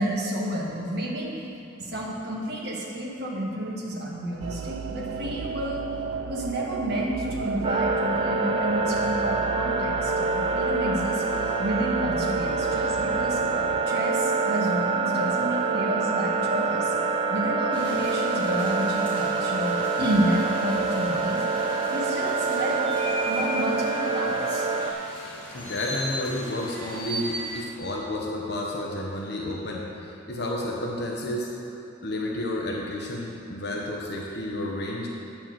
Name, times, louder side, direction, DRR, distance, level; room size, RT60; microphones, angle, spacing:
voice 1, 0.0-1.3 1.8-5.9 6.2-11.2 11.6-13.4 13.9-16.9 17.3-21.4 21.9-22.8 23.2-24.7, right 1 dB, 55° right, -3 dB, 1.5 m, -30 dB
sound 1, 4.4-13.8, right 5 dB, 80° right, 0.4 m, -34 dB
sound 2, 7.6-24.9, right 3 dB, 25° right, 0.5 m, -26 dB
sound 3, 17.7-27.6, equal, 5° left, 2.1 m, -38 dB
voice 2, 25.1-31.5 32.0-35.1, left 1 dB, 55° left, -2 dB, 0.9 m, -31 dB
9.1 x 4.5 x 7.5 m, 2.9 s
head